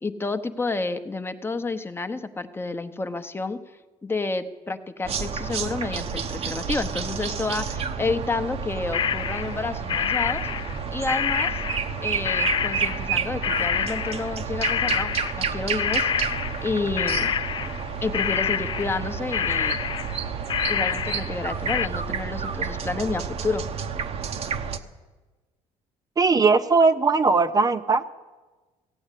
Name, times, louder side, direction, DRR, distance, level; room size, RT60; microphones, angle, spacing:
voice 1, 0.0-3.6 4.0-10.5 10.9-11.6 12.0-16.3 16.6-17.3 18.0-19.8 20.7-23.6, left 3 dB, 20° left, 9 dB, 0.8 m, -30 dB
sound 1, 5.0-24.8, right 6 dB, 50° right, 0.9 m, -30 dB
sound 2, 8.9-9.6 9.9-12.0 12.2-21.4 21.7-21.9, left 8 dB, 40° left, 0.3 m, -27 dB
voice 2, 26.2-28.1, right 4 dB, 30° right, 9 dB, 0.6 m, -19 dB
15.5 x 8.6 x 8.3 m, 1.3 s
cardioid pair, 90°, 13 cm